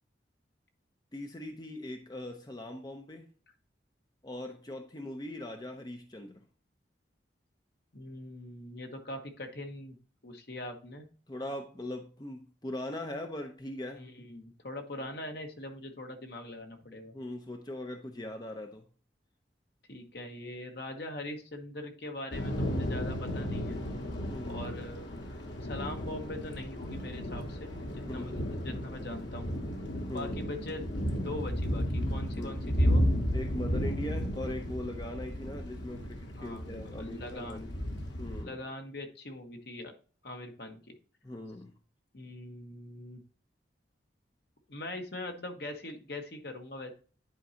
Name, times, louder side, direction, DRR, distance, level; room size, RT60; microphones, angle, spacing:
voice 1, 1.1-3.3 4.2-6.4 11.3-14.0 17.1-18.8 24.3-24.7 28.1-28.5 30.1-30.4 32.3-32.6 33.3-37.7 38.2-38.6 41.2-41.7, left 1 dB, 20° left, 4 dB, 0.6 m, -40 dB
voice 2, 7.9-9.9 10.2-11.0 14.0-17.1 19.9-23.8 24.5-25.2 25.6-27.7 28.1-29.5 30.1-30.9 31.1-33.0 36.4-37.6 38.5-39.9 40.2-40.9 42.1-43.2 44.7-46.9, left 1 dB, 60° left, 4 dB, 1.3 m, -42 dB
Thunder / Rain, 22.3-38.4, equal, 85° left, 1.6 m, -33 dB
10.5 x 4.6 x 2.8 m, 0.40 s
head